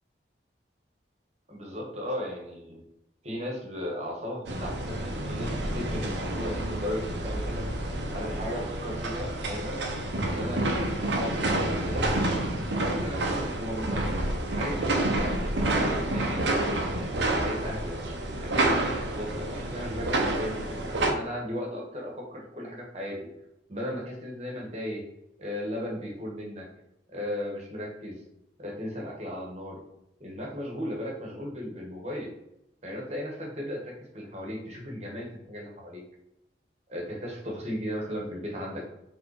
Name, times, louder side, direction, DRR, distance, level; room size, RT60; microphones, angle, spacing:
voice 1, 1.5-2.8 3.2-7.7 8.1-9.8 10.2-12.1 13.0-16.4 16.9-18.0 18.4-23.2 23.7-25.0 25.4-26.7 27.1-28.2 28.6-29.8 30.2-32.3 32.8-36.0 36.9-38.8, equal, 35° right, -1 dB, 1.5 m, -36 dB
sound 1, 4.5-21.1, right 1 dB, 80° right, 0.9 m, -29 dB
5.2 x 3.8 x 4.9 m, 0.85 s
head